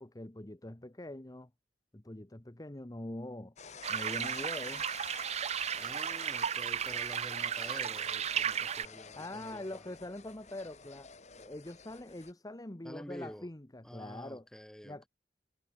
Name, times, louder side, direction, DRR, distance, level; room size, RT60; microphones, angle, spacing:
voice 1, 0.0-1.5 1.9-4.8 9.2-14.5 14.8-15.0, left 1 dB, 20° left, 1.1 m, -44 dB
sound 1, 3.6-12.3, left 5 dB, 40° left, 2.2 m, -50 dB
sound 2, 3.8-8.9, right 8 dB, 40° right, 0.5 m, -34 dB
voice 2, 5.7-9.7 12.8-13.5 13.8-15.1, equal, 5° left, 7.2 m, -48 dB
head